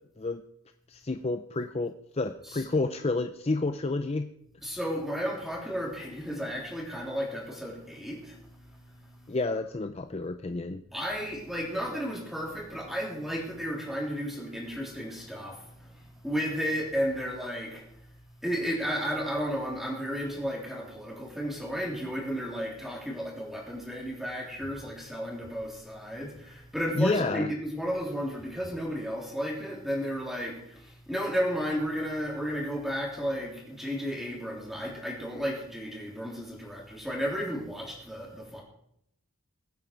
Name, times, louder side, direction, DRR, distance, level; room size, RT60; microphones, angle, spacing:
voice 1, 0.9-4.3 9.3-10.8 27.0-27.5, left 2 dB, 30° left, 8 dB, 0.5 m, -30 dB
voice 2, 4.6-9.4 10.9-18.1 18.4-38.6, equal, ahead, -2 dB, 3.4 m, -33 dB
22.0 x 9.0 x 4.6 m, 0.73 s
head